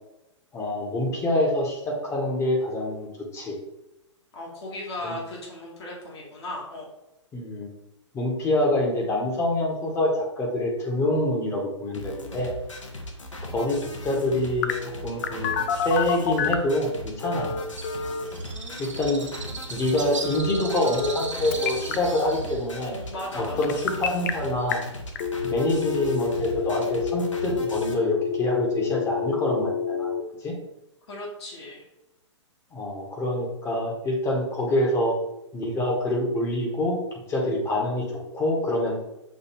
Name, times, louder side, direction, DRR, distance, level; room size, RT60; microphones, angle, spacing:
voice 1, 0.5-3.1 3.3-3.6 5.0-5.1 7.3-7.7 8.1-12.5 13.5-14.7 15.0-17.5 18.8-19.3 19.7-23.0 23.3-24.8 25.4-30.6 32.7-35.1 35.5-37.0 37.3-39.0, left 1 dB, 15° left, -1 dB, 0.9 m, -26 dB
voice 2, 4.3-6.9 18.4-19.0 23.1-23.8 31.1-31.8, left 1 dB, 55° left, -3 dB, 1.2 m, -37 dB
sound 1, 11.9-27.9, equal, 75° left, 0.8 m, -38 dB
Telephone, 14.6-16.7 17.2-18.2 20.2-21.2 21.5-21.9 23.6-24.3 24.7-24.8 25.2-30.2, left 7 dB, 35° left, 0.4 m, -28 dB
Bird, 17.7-25.0, right 4 dB, 80° right, 0.8 m, -38 dB
6.1 x 2.6 x 2.9 m, 0.92 s
figure-of-eight pair, 115°, 16 cm